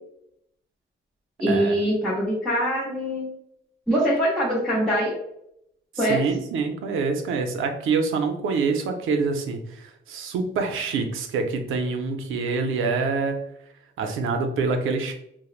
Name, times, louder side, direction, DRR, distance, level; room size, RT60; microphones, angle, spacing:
voice 1, 1.4-3.3 3.9-5.2 6.0-6.2, equal, ahead, -9 dB, 0.7 m, -23 dB
voice 2, 5.9-13.4 14.0-15.1, right 4 dB, 90° right, 6 dB, 0.5 m, -26 dB
3.0 x 2.0 x 2.4 m, 0.76 s
cardioid pair, 110°, 20 cm